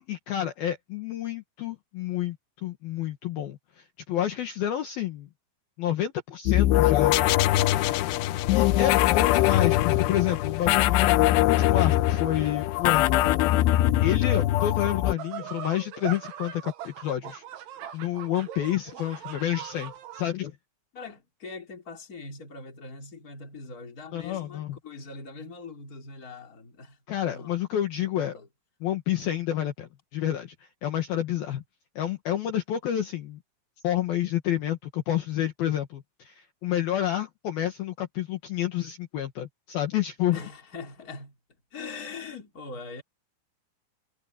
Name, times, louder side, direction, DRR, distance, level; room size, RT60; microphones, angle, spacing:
voice 1, 0.0-2.4 2.6-5.3 5.8-7.2 8.5-13.2 14.0-17.4 17.9-20.5 24.1-24.8 27.1-28.4 28.8-31.6 32.0-33.4 33.8-40.4, left 11 dB, 65° left, 2.9 m, -29 dB
sound 1, 6.5-15.1, left 15 dB, 80° left, 2.7 m, -22 dB
sound 2, 15.2-20.3, right 10 dB, 85° right, 4.5 m, -40 dB
voice 2, 20.9-27.0 27.3-27.5 28.2-28.5 40.3-41.4 41.7-43.0, left 4 dB, 20° left, 3.3 m, -42 dB
omnidirectional pair, 5.3 m